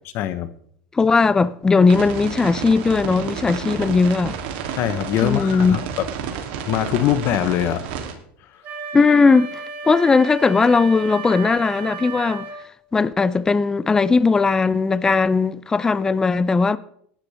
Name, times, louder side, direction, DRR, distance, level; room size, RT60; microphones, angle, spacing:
voice 1, 0.1-0.5 4.8-6.0 6.7-7.9, left 12 dB, 45° left, 1.1 m, -22 dB
voice 2, 0.9-4.4 5.2-5.8 8.9-12.5 12.9-16.8, left 4 dB, 10° left, 0.5 m, -18 dB
sound 1, 1.9-8.1, right 7 dB, 70° right, 3.0 m, -31 dB
Wind instrument woodwind instrument, 8.6-12.6, right 4 dB, 40° right, 4.1 m, -33 dB
18.5 x 12.0 x 3.5 m
supercardioid pair, 150°, 5 cm